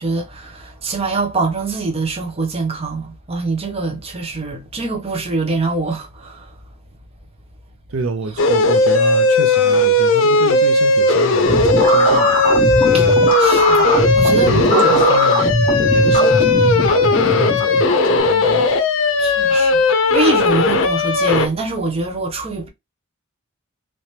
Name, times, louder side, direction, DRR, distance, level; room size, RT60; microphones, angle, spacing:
voice 1, 0.0-6.6 12.9-13.1 13.4-15.1 16.1-16.4 19.2-19.8 20.1-22.7, right 3 dB, 30° right, 0.8 m, -24 dB
voice 2, 7.9-12.5 14.3-15.5 15.9-18.7, right 4 dB, 75° right, 0.5 m, -28 dB
sound 1, 8.4-21.5, left 2 dB, 65° left, 0.5 m, -16 dB
sound 2, 11.4-18.2, left 1 dB, 25° left, 1.1 m, -19 dB
3.1 x 2.9 x 3.2 m
head